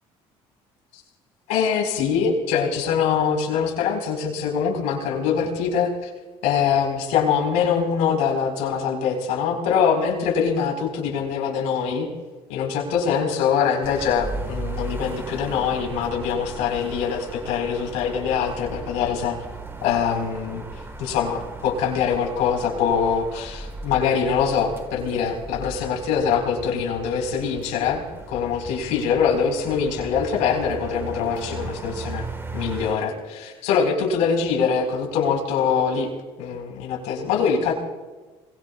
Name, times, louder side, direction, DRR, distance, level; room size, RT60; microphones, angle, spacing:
voice 1, 1.5-6.1 6.4-12.1 12.5-19.4 19.8-20.6 21.0-32.3 32.5-36.1 36.4-37.7, left 6 dB, 80° left, 1 dB, 4.5 m, -23 dB
sound 1, 13.8-32.9, right 2 dB, 20° right, 1.5 m, -37 dB
28.0 x 21.5 x 2.4 m, 1.2 s
supercardioid pair, 80°, 13 cm